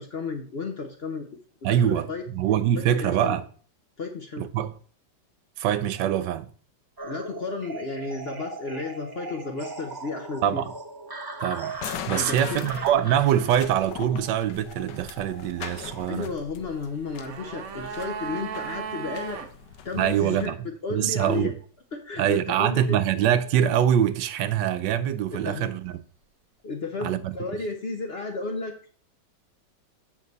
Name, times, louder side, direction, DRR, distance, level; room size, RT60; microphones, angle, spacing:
voice 1, 0.0-2.2 2.8-3.4 4.0-4.5 7.0-10.6 12.1-12.6 16.1-19.4 19.8-20.5 20.8-21.5 21.9-23.0 25.3-25.7 26.6-28.8, left 4 dB, 50° left, 0.8 m, -33 dB
voice 2, 1.6-3.4 4.4-4.7 5.6-6.5 10.4-10.7 11.4-11.8 12.1-16.3 19.9-20.6 20.9-21.5 22.2-26.0 27.0-27.3, right 10 dB, 80° right, 1.3 m, -24 dB
sound 1, 7.0-16.1, right 3 dB, 30° right, 0.4 m, -39 dB
sound 2, 11.7-20.5, left 8 dB, 75° left, 1.4 m, -41 dB
sound 3, 16.9-19.5 19.8-19.9, right 8 dB, 60° right, 1.2 m, -36 dB
7.3 x 6.5 x 4.0 m
omnidirectional pair, 1.9 m